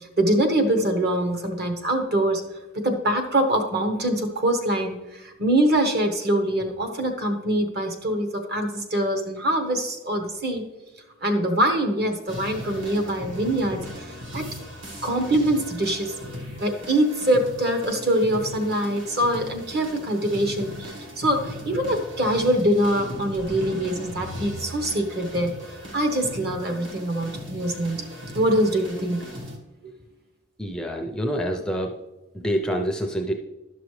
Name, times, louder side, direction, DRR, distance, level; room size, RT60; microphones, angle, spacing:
voice 1, 0.2-2.4 2.8-10.6 11.2-14.4 15.0-16.2 16.6-25.5 25.9-28.0 28.3-29.2, right 1 dB, 50° right, 5 dB, 1.0 m, -24 dB
sound 1, 12.3-29.6, equal, 65° right, 1.4 m, -38 dB
voice 2, 30.6-32.0 32.3-33.3, equal, 5° left, 3 dB, 0.4 m, -26 dB
11.5 x 6.0 x 3.1 m, 1.0 s
head